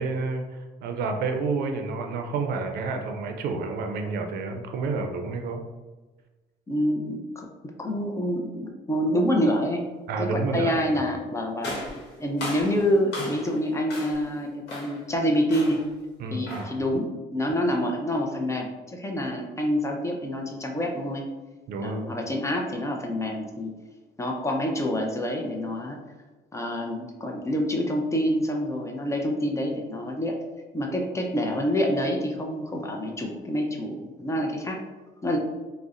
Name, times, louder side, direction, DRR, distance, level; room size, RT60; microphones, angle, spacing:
voice 1, 0.0-5.6 10.1-10.8 16.2-16.7 21.7-22.0, right 4 dB, 65° right, 5 dB, 0.4 m, -29 dB
voice 2, 6.7-9.9 10.2-11.7 12.2-15.8 16.3-21.2 21.8-23.7 24.2-26.0 26.5-30.3 30.7-34.8 35.2-35.4, equal, 15° left, 1 dB, 0.4 m, -27 dB
sound 1, 11.6-13.6 13.9-14.3 14.7-15.1 15.5-15.9 16.5-16.8, left 2 dB, 85° left, 0.9 m, -36 dB
3.7 x 2.0 x 2.4 m, 1.2 s
cardioid pair, 110°, 17 cm